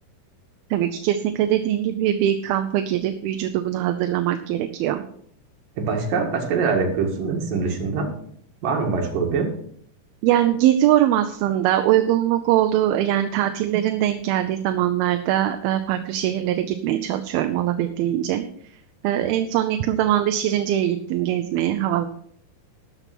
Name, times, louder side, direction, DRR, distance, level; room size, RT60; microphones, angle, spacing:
voice 1, 0.7-5.0 10.2-18.4 19.0-22.1, right 12 dB, 80° right, 8 dB, 2.5 m, -22 dB
voice 2, 5.8-8.1 8.6-9.5, right 4 dB, 65° right, 2 dB, 3.5 m, -23 dB
13.0 x 6.8 x 6.0 m, 0.63 s
omnidirectional pair, 4.5 m